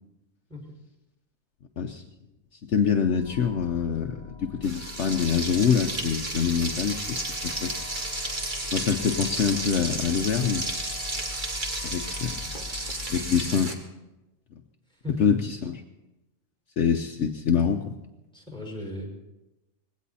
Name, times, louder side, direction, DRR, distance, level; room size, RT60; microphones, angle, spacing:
voice 1, 2.7-7.2 7.4-7.7 8.7-10.7 11.8-12.5 13.1-13.8 15.2-15.8 16.8-18.0, left 7 dB, 65° left, 5 dB, 1.1 m, -25 dB
sound 1, 3.2-13.4, left 5 dB, 25° left, 6.4 m, -43 dB
Frying (food), 4.6-13.7, right 2 dB, 35° right, 1.9 m, -33 dB
voice 2, 15.0-15.5 18.3-19.1, left 2 dB, 5° left, -3 dB, 5.7 m, -36 dB
20.0 x 17.0 x 4.2 m, 1.0 s
omnidirectional pair, 1.4 m